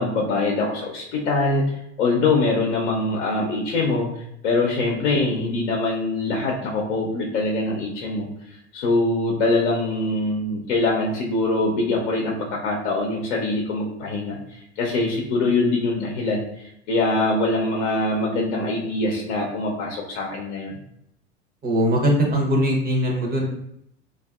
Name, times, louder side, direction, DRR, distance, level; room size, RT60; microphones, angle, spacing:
voice 1, 0.0-1.7 2.0-4.1 4.4-8.3 8.7-20.8, left 2 dB, 70° left, -1 dB, 0.7 m, -23 dB
voice 2, 21.6-23.4, equal, 25° right, 0 dB, 0.7 m, -20 dB
3.3 x 2.4 x 2.3 m, 0.76 s
hypercardioid pair, 85°, 35 cm